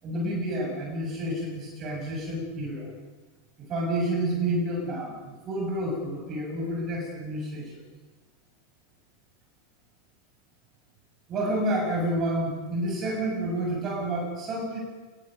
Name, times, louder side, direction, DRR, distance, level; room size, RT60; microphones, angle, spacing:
voice 1, 0.0-2.9 3.6-7.8 11.3-14.8, right 1 dB, 30° right, 0 dB, 7.2 m, -29 dB
29.5 x 22.5 x 5.3 m, 1.3 s
figure-of-eight pair, 90°, 0 cm